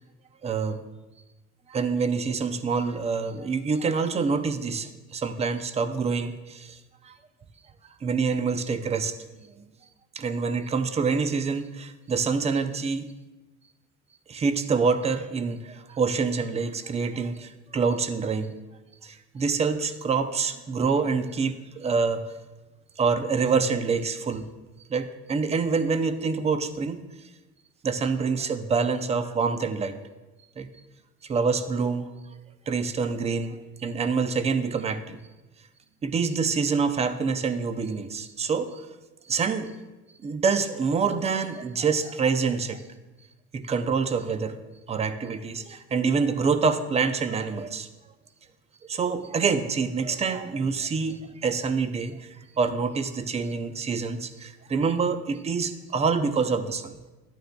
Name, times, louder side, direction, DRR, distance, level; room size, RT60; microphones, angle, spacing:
voice 1, 0.4-0.8 1.7-6.8 7.0-7.2 8.0-9.6 10.2-13.1 14.3-18.5 19.0-22.2 23.0-24.5 24.9-27.0 27.8-30.0 30.6-30.7 31.2-32.1 32.7-35.2 36.0-38.9 39.3-39.7 40.2-42.8 43.5-44.6 44.9-47.9 48.8-57.1, right 5 dB, 20° right, 11 dB, 0.5 m, -26 dB
13.0 x 9.0 x 2.2 m, 1.1 s
cardioid pair, 125°, 31 cm